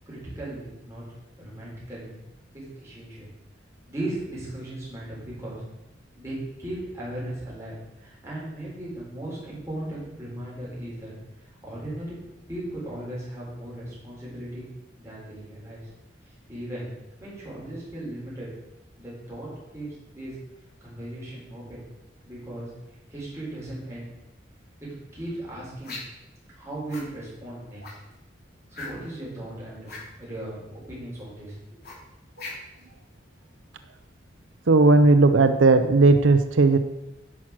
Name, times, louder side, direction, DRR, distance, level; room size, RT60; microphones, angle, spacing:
voice 1, 0.1-1.0 1.4-2.2 2.5-3.3 3.9-5.6 6.1-11.1 11.6-12.2 12.5-14.7 15.0-15.8 16.5-16.9 17.2-18.5 19.0-19.9 20.1-20.4 20.8-21.9 22.2-22.7 23.1-24.1 24.8-26.0 26.6-27.8 28.7-31.8, right 1 dB, 15° right, -7 dB, 4.5 m, -37 dB
sound 1, 25.8-26.2 26.9-27.1 27.8-28.1 28.7-29.2 29.8-30.1 31.8-32.8, left 3 dB, 50° left, 3.1 m, -39 dB
voice 2, 34.7-36.8, right 3 dB, 85° right, 9 dB, 0.6 m, -16 dB
10.5 x 5.9 x 6.2 m, 0.93 s
head